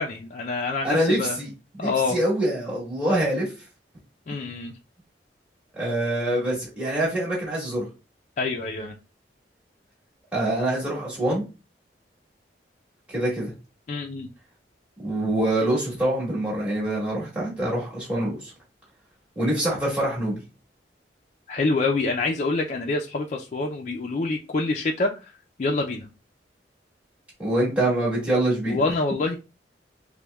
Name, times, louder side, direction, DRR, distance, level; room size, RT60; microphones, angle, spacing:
voice 1, 0.0-1.4 1.8-2.2 4.3-4.7 8.4-9.0 13.9-14.3 21.5-25.3 25.6-26.1 28.7-29.4, left 3 dB, 40° left, 1 dB, 0.4 m, -26 dB
voice 2, 0.8-1.5 1.8-3.5 5.7-7.9 10.3-11.4 13.1-13.5 15.0-18.5 19.4-20.4 27.4-28.8, right 1 dB, 5° right, -5 dB, 1.7 m, -25 dB
5.8 x 2.1 x 2.2 m, 0.30 s
head